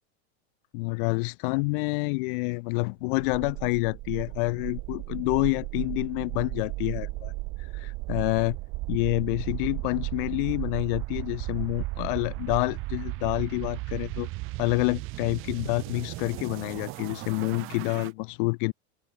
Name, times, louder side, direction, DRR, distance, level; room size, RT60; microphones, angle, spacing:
voice 1, 0.7-7.3 7.6-8.6 8.9-14.3 14.6-18.7, left 28 dB, 50° left, 7.5 m, -28 dB
sound 1, 3.2-18.1, right 22 dB, 35° right, 7.8 m, -35 dB
open air
supercardioid pair, 170°, 34 cm